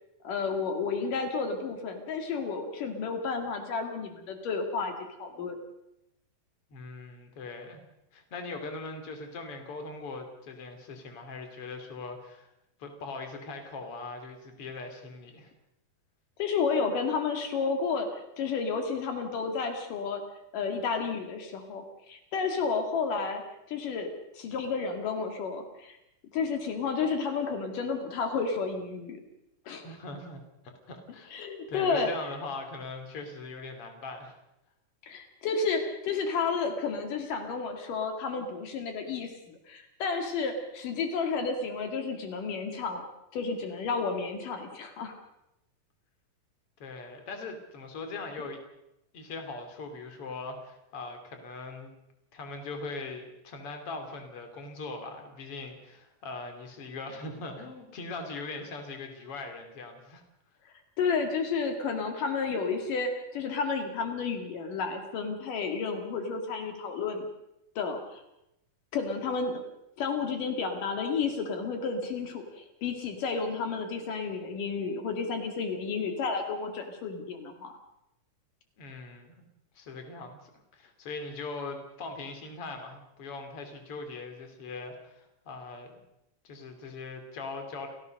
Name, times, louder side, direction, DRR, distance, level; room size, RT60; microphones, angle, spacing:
voice 1, 0.2-4.9 5.2-5.6 16.4-20.2 20.5-23.4 23.7-26.0 26.3-29.2 29.7-29.8 31.3-32.1 35.0-43.0 43.3-45.1 61.0-67.3 67.8-68.2 68.9-69.6 70.0-77.7, left 5 dB, 80° left, 5 dB, 3.8 m, -31 dB
voice 2, 6.7-7.8 8.1-12.5 12.8-15.5 29.8-31.3 31.7-34.4 46.8-48.6 49.1-51.9 52.3-60.2 78.8-79.3 79.8-86.0 86.4-87.9, left 3 dB, 45° left, 5 dB, 3.7 m, -40 dB
29.5 x 16.0 x 6.5 m, 0.87 s
omnidirectional pair, 3.7 m